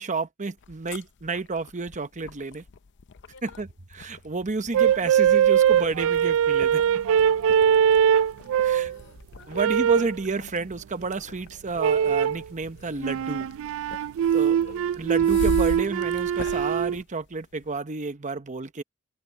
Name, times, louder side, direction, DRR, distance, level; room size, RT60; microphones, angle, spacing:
voice 1, 0.0-2.6 3.4-6.8 8.6-8.9 9.5-13.5 14.3-14.6 15.0-18.8, right 3 dB, 35° right, 0.9 m, -30 dB
sound 1, 0.6-17.8, left 4 dB, 55° left, 0.6 m, -41 dB
voice 2, 3.3-3.6 7.6-8.1 8.4-9.6 14.3-14.8, left 3 dB, 70° left, 4.5 m, -51 dB
sound 2, 4.7-9.0 9.5-10.2 11.8-12.4 13.0-17.0, right 8 dB, 65° right, 0.3 m, -21 dB
open air
head